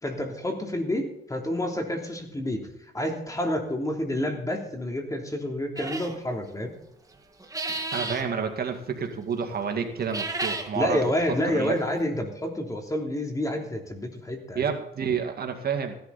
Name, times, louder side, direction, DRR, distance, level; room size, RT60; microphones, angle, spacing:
voice 1, 0.0-2.7 2.9-6.7 10.7-14.7, left 1 dB, 15° left, 2 dB, 3.3 m, -29 dB
sound 1, 5.8-6.2 7.4-8.2 10.0-10.7, right 2 dB, 15° right, 2.0 m, -32 dB
voice 2, 7.7-11.1 11.5-11.8 14.6-15.9, right 6 dB, 50° right, 4 dB, 2.0 m, -29 dB
16.5 x 11.5 x 4.2 m, 0.80 s
cardioid pair, 90°, 20 cm